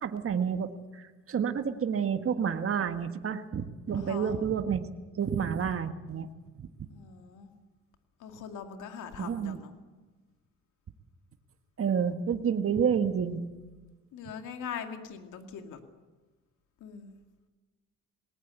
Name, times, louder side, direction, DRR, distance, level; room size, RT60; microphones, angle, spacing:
voice 1, 0.0-4.9 5.2-6.3 6.5-6.7 9.2-9.6 11.8-13.4, right 7 dB, 45° right, 8 dB, 1.7 m, -29 dB
voice 2, 3.9-4.3 6.9-7.5 8.2-9.7 14.1-15.8 16.8-17.1, left 7 dB, 80° left, 6 dB, 2.4 m, -41 dB
19.5 x 19.0 x 8.4 m, 1.3 s
cardioid pair, 90°, 30 cm